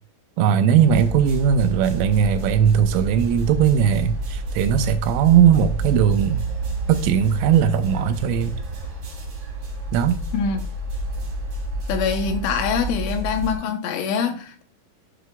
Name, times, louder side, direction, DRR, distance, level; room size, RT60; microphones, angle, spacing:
voice 1, 0.4-6.4 6.9-8.6 9.9-10.2, right 8 dB, 85° right, 3.1 m, -18 dB
sound 1, 0.8-13.5, right 2 dB, 50° right, 3.4 m, -29 dB
voice 2, 11.9-14.6, left 6 dB, 75° left, 3.2 m, -24 dB
11.0 x 7.9 x 2.3 m
omnidirectional pair, 5.9 m